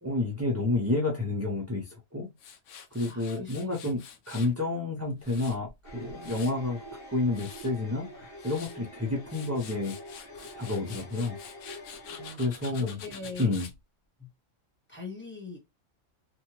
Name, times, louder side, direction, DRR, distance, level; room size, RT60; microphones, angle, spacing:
voice 1, 0.0-2.3 2.9-6.8 7.1-10.0 10.5-11.4 12.4-13.0 13.4-13.7, left 2 dB, 25° right, 0.3 m, -30 dB
Tools, 2.4-4.5 5.0-6.7 7.1-7.7 8.2-8.8 9.2-13.8, left 7 dB, 75° left, 0.9 m, -47 dB
voice 2, 3.1-3.7 12.1-13.4 14.2-14.3 14.9-15.6, left 3 dB, 10° left, 1.0 m, -42 dB
sound 1, 5.8-12.3, equal, 50° left, 1.0 m, -46 dB
3.0 x 2.2 x 2.9 m
omnidirectional pair, 1.3 m